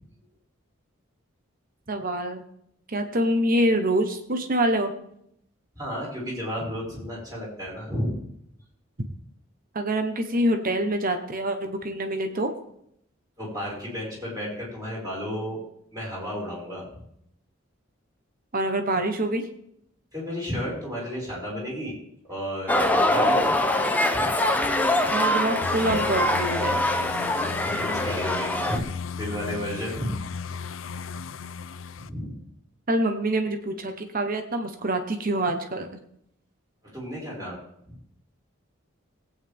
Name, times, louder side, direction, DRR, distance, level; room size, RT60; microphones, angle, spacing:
voice 1, 1.9-2.4 2.9-4.9 9.7-12.5 18.5-19.4 25.1-26.8 32.9-35.9, right 1 dB, 45° right, 6 dB, 1.1 m, -25 dB
voice 2, 5.8-8.2 13.4-15.6 15.9-17.0 20.1-21.9 22.3-23.5 24.2-24.3 27.6-28.9 29.1-30.1 32.0-32.3 36.9-37.6 37.9-38.0, equal, 20° right, -5 dB, 5.3 m, -32 dB
sound 1, 22.7-28.8, left 1 dB, 10° left, 0.8 m, -23 dB
sound 2, 25.6-32.1, left 5 dB, 70° left, 0.5 m, -35 dB
19.5 x 9.0 x 3.6 m, 0.73 s
head